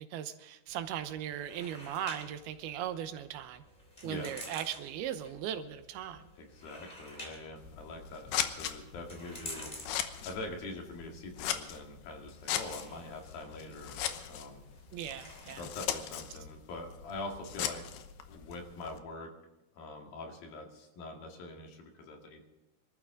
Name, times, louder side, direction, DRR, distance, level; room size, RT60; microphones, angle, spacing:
voice 1, 0.0-3.6 4.0-6.3 14.9-15.6, right 10 dB, 85° right, 10 dB, 2.8 m, -38 dB
sound 1, 0.7-15.7, left 1 dB, 15° left, 2.6 m, -51 dB
voice 2, 6.4-9.7 10.3-14.6 15.6-17.8 18.3-19.3 19.7-22.4, left 2 dB, 70° left, 2 dB, 3.9 m, -44 dB
Scissors, 7.6-19.0, left 10 dB, 90° left, 3.0 m, -39 dB
24.5 x 13.5 x 3.8 m, 0.99 s
omnidirectional pair, 4.5 m